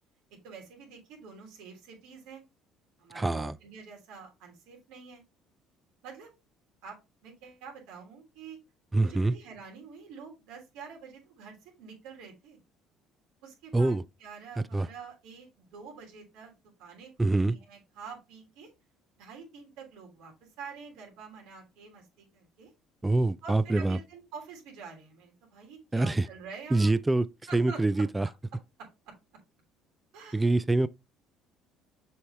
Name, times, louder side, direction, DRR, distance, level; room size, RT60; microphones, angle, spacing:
voice 1, 0.4-2.4 3.0-5.2 6.0-6.3 6.8-8.6 9.0-12.6 13.4-16.5 16.8-18.7 19.2-22.7 23.4-26.9 27.5-28.0 29.0-29.1 30.1-30.5, right 5 dB, 85° right, 3.1 m, -47 dB
voice 2, 3.1-3.5 8.9-9.4 13.7-14.0 14.7-14.9 17.2-17.6 23.0-24.0 25.9-26.3 26.7-27.3 27.5-28.3 30.3-30.9, right 2 dB, 15° right, 0.3 m, -25 dB
7.0 x 4.7 x 3.4 m
cardioid pair, 105°, 0 cm